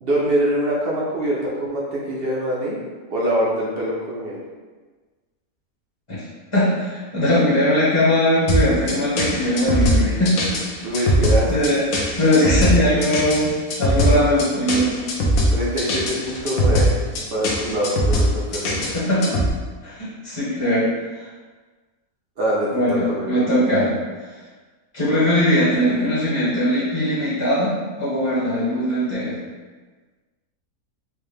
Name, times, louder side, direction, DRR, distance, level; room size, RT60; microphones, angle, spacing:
voice 1, 0.0-2.8 3.1-4.4 10.8-11.5 15.5-18.8 22.4-23.5, right 1 dB, 55° right, -5 dB, 0.7 m, -24 dB
voice 2, 6.5-10.4 11.0-11.1 11.5-14.9 18.9-19.4 19.8-20.9 21.1-21.3 22.7-23.9 24.9-29.4, left 1 dB, 25° left, -9 dB, 0.8 m, -20 dB
sound 1, 8.5-19.5, equal, 70° left, 1.1 m, -20 dB
4.6 x 2.1 x 3.2 m, 1.4 s
omnidirectional pair, 1.6 m